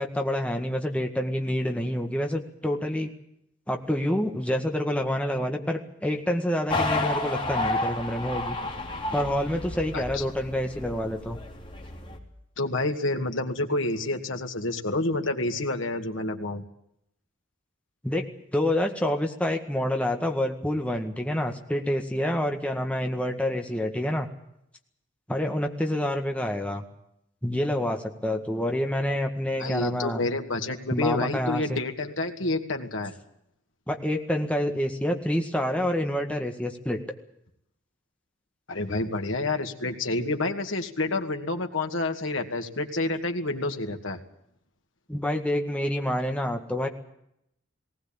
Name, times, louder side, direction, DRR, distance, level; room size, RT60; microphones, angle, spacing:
voice 1, 0.0-3.1 3.7-8.6 9.1-11.4 18.0-18.3 18.5-24.3 25.3-26.8 27.4-30.2 30.9-31.8 33.9-37.0 45.1-46.9, left 1 dB, 5° left, 3 dB, 1.8 m, -27 dB
sound 1, 6.7-12.2, left 2 dB, 25° left, 3.2 m, -31 dB
voice 2, 12.6-16.6 29.6-33.1 38.7-44.2, left 2 dB, 80° left, 4 dB, 2.3 m, -28 dB
19.5 x 17.5 x 8.9 m, 0.77 s
head